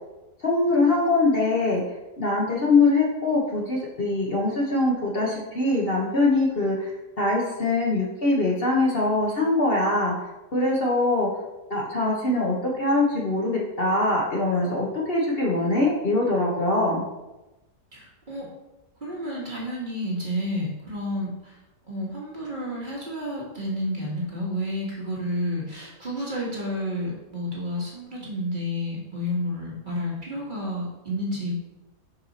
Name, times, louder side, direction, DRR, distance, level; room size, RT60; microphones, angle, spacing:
voice 1, 0.4-1.8 2.2-6.9 7.2-10.1 10.5-11.3 11.7-17.0, left 2 dB, 40° left, -4 dB, 1.1 m, -23 dB
voice 2, 17.9-18.5 19.0-21.5 21.9-31.5, equal, 30° right, -5 dB, 1.5 m, -30 dB
5.6 x 4.7 x 4.1 m, 1.0 s
omnidirectional pair, 1.7 m